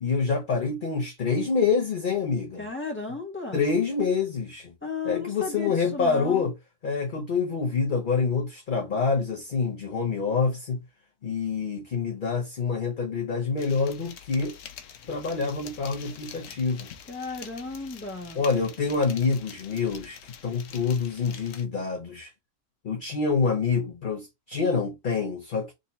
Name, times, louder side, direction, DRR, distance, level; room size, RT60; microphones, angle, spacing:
voice 1, 0.0-2.7 3.5-4.7 5.0-6.5 6.8-10.8 11.2-14.6 15.0-16.9 18.3-22.3 22.8-25.7, left 5 dB, 45° left, 0.8 m, -26 dB
voice 2, 2.6-3.6 4.8-6.5 17.1-18.5, left 4 dB, 10° left, 1.5 m, -34 dB
sound 1, 13.6-21.6, left 8 dB, 70° left, 1.0 m, -46 dB
3.9 x 2.7 x 4.0 m
omnidirectional pair, 1.4 m